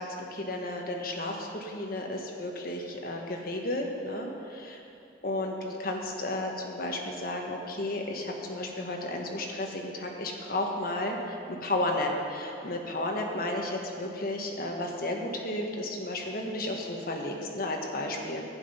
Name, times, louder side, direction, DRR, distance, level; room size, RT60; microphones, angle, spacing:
voice 1, 0.0-4.8 5.2-18.4, left 1 dB, 50° left, 1 dB, 1.4 m, -33 dB
11.5 x 9.1 x 5.5 m, 2.7 s
head